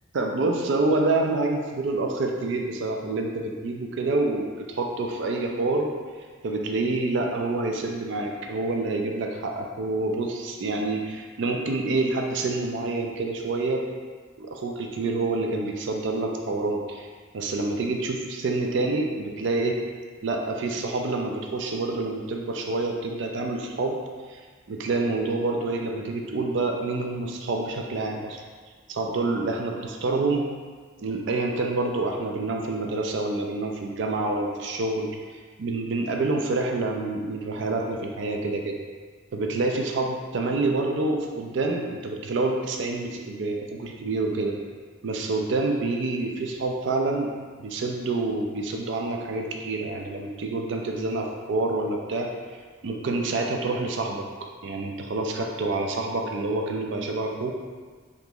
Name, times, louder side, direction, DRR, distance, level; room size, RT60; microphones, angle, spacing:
voice 1, 0.1-5.9 6.4-13.8 14.4-17.1 17.3-19.8 20.2-24.0 24.3-24.4 24.7-28.4 28.9-30.5 31.0-35.2 35.6-38.8 39.3-44.6 45.0-47.3 47.6-52.3 52.8-54.3 54.6-57.5, right 2 dB, 60° right, 1 dB, 0.4 m, -27 dB
2.8 x 2.6 x 3.7 m, 1.5 s
head